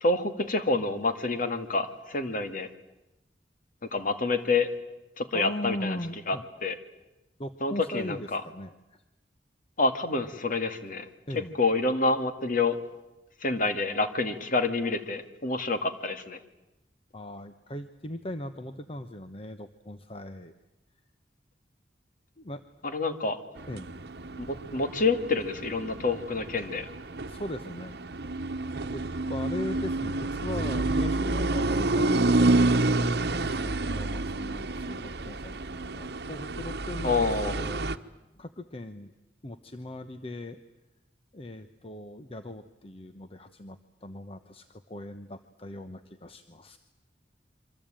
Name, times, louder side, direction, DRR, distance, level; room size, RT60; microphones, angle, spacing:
voice 1, 0.0-2.7 3.9-4.7 5.2-6.0 6.3-6.4 6.6-6.8 7.6-8.4 9.8-11.1 11.3-12.8 13.4-16.4 22.8-23.4 24.4-24.5 24.7-26.9 37.0-37.5, left 3 dB, 50° left, 8 dB, 2.2 m, -27 dB
voice 2, 5.3-6.4 7.4-8.7 11.3-11.5 17.1-20.5 22.4-22.6 23.7-23.9 27.3-28.0 28.9-38.0 38.4-39.1 39.4-40.6 41.3-46.8, left 1 dB, 35° left, 9 dB, 1.1 m, -39 dB
sound 1, 23.6-38.0, right 2 dB, 65° right, 1.1 m, -29 dB
27.5 x 24.5 x 9.0 m, 0.97 s
head